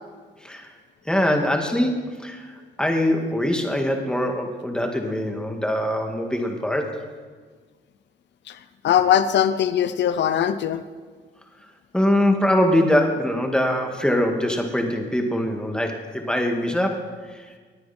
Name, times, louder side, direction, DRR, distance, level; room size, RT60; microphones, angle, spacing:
voice 1, 1.1-2.5 2.8-7.0 11.9-17.4, left 1 dB, 5° left, 2 dB, 2.2 m, -23 dB
voice 2, 8.8-10.8, left 9 dB, 65° left, 12 dB, 0.7 m, -20 dB
19.5 x 9.6 x 4.4 m, 1.5 s
cardioid pair, 90°, 20 cm